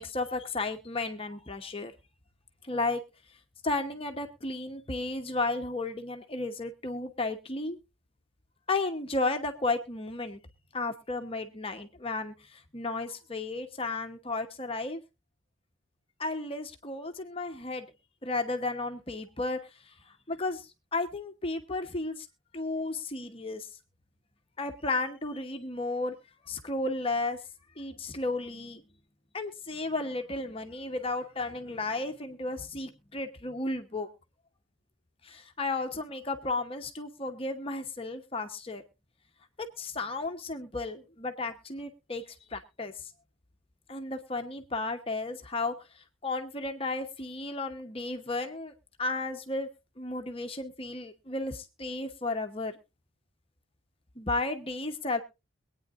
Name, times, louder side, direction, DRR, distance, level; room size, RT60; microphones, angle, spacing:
voice 1, 0.0-1.9 2.7-3.0 3.6-7.8 8.7-10.4 10.7-15.0 16.2-17.9 18.2-19.6 19.9-20.0 20.3-22.3 22.5-23.7 24.6-26.1 26.5-27.4 27.8-28.8 29.3-34.1 35.2-38.8 39.6-42.2 42.5-42.9 43.9-45.7 46.2-48.7 49.0-49.7 50.0-52.7 54.2-55.2, left 2 dB, 30° left, 6 dB, 1.0 m, -33 dB
23.0 x 9.2 x 2.5 m, 0.27 s
head